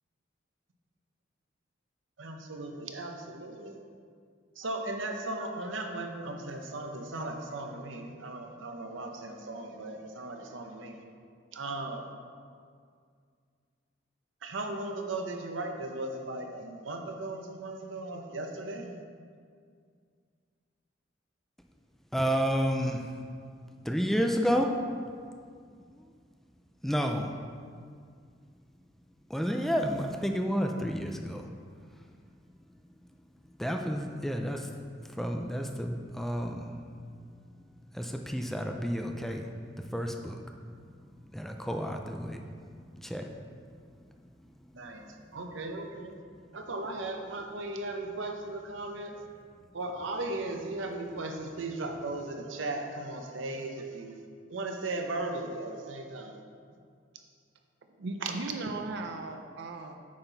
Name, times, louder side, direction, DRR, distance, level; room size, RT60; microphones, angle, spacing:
voice 1, 2.2-3.8 4.6-11.0 11.5-12.0 14.4-19.0 44.7-45.1 45.3-46.2 46.5-49.1 49.7-54.1 54.5-56.4 58.2-58.5, right 2 dB, 80° right, 4 dB, 0.8 m, -37 dB
voice 2, 22.1-23.1 23.8-24.7 26.8-27.3 29.3-31.5 33.6-34.7 35.2-36.7 37.9-39.5 39.8-40.4 41.3-42.4 43.0-43.3, equal, ahead, 3 dB, 0.4 m, -30 dB
voice 3, 58.0-60.0, right 3 dB, 60° right, 5 dB, 0.5 m, -37 dB
8.7 x 5.8 x 4.0 m, 2.1 s
head